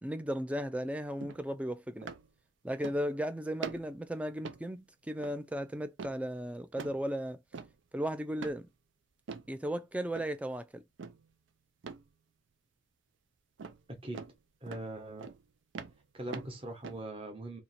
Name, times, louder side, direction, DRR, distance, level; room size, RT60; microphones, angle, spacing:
voice 1, 0.0-2.1 2.6-7.4 7.9-8.7 9.5-10.8, equal, 5° right, 0.3 m, -35 dB
sound 1, 1.2-1.4 2.0-2.3 2.8-3.2 3.6-4.0 4.4-4.7 5.2-5.4 6.0-6.2 6.8-7.0 7.5-7.8 8.4-8.6 9.3-9.5 10.1-10.4 11.0-11.3 11.8-12.1 13.6-13.8 14.1-14.3 14.7-14.9 15.2-15.4 15.7-17.0, right 5 dB, 80° right, 0.5 m, -43 dB
voice 2, 14.6-15.3 16.1-17.6, right 1 dB, 30° right, 1.0 m, -41 dB
2.8 x 2.8 x 4.1 m
head